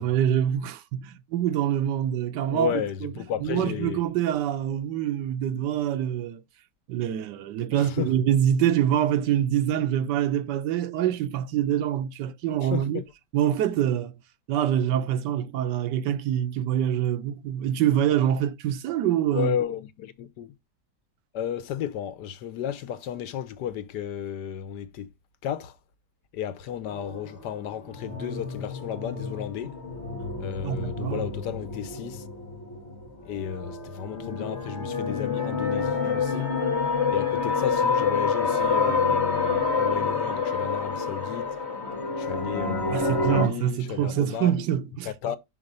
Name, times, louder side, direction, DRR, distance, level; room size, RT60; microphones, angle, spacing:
voice 1, 0.0-3.1 3.4-6.4 6.9-13.0 13.3-14.1 14.5-19.5 30.6-31.3 42.9-45.4, right 10 dB, 80° right, 1.3 m, -25 dB
voice 2, 2.5-4.0 7.8-8.1 12.7-13.0 19.3-20.5 21.3-25.1 25.4-25.7 26.3-29.7 30.4-32.2 33.3-36.5 37.1-41.4 42.2-44.6 45.1-45.4, left 9 dB, 80° left, 1.4 m, -33 dB
sound 1, 26.9-43.5, left 4 dB, 40° left, 1.9 m, -28 dB
5.9 x 3.7 x 5.3 m
omnidirectional pair, 1.8 m